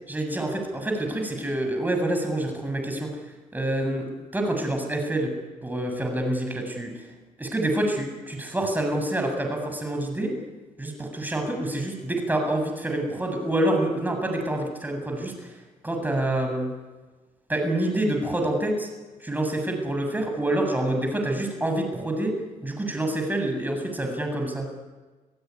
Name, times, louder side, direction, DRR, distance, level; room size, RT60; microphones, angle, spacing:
voice 1, 0.1-5.3 5.6-7.1 7.4-10.3 10.8-16.7 17.5-18.9 19.2-24.7, right 1 dB, 10° right, 3 dB, 7.8 m, -27 dB
27.5 x 16.0 x 9.8 m, 1.3 s
cardioid pair, 85°, 14 cm